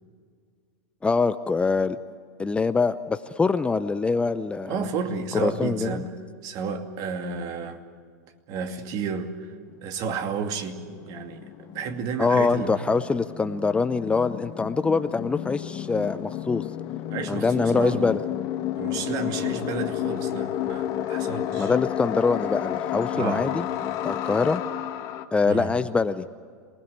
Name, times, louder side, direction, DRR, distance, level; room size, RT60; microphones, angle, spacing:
voice 1, 1.0-2.0 2.4-4.9 5.3-6.0 12.2-16.6 17.3-18.2 21.6-23.6 24.0-24.6 25.3-26.2, left 4 dB, 10° left, 12 dB, 0.7 m, -24 dB
voice 2, 4.7-6.1 6.4-7.8 8.5-9.5 9.8-10.8 11.1-12.7 17.1-18.2 18.8-21.7 23.1-23.5 25.5-25.7, right 5 dB, 45° right, 6 dB, 2.5 m, -31 dB
sound 1, 9.7-9.8 10.0-25.3, left 11 dB, 45° left, 1.6 m, -31 dB
27.5 x 20.0 x 8.1 m, 2.1 s
hypercardioid pair, 105°, 9 cm